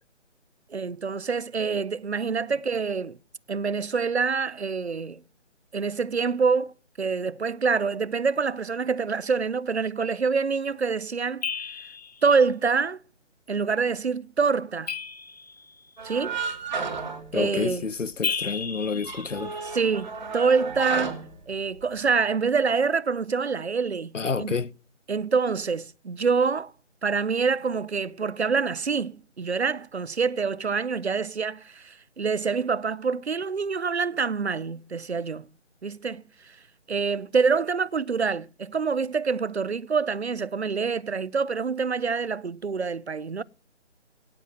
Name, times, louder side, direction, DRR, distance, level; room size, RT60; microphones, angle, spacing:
voice 1, 0.7-3.2 3.5-5.2 5.7-11.4 12.2-13.0 13.5-14.9 16.0-16.4 17.3-17.9 19.7-24.6 25.1-26.7 27.0-35.5 35.8-36.6 36.9-43.4, right 5 dB, 60° right, 0.7 m, -26 dB
sound 1, 11.4-12.2 14.9-15.9 18.2-19.9, left 6 dB, 35° left, 1.5 m, -33 dB
sound 2, 16.0-18.1 18.4-18.5 18.9-22.1, right 5 dB, 35° right, 2.6 m, -33 dB
voice 2, 17.3-19.6 24.1-24.7, left 5 dB, 80° left, 0.9 m, -29 dB
18.0 x 9.1 x 7.5 m
figure-of-eight pair, 155°, 37 cm